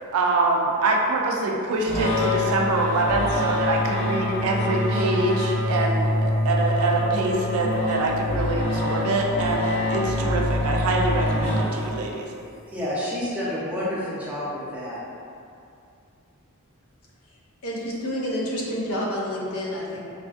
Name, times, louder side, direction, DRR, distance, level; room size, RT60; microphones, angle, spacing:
voice 1, 0.1-12.3, right 2 dB, 70° right, 0 dB, 0.4 m, -25 dB
sound 1, 1.9-12.1, left 1 dB, 30° left, 0.7 m, -25 dB
voice 2, 12.7-15.0, left 1 dB, 5° right, -9 dB, 0.6 m, -29 dB
voice 3, 17.6-20.1, equal, 75° left, -4 dB, 0.5 m, -29 dB
3.2 x 2.4 x 2.5 m, 2.5 s
head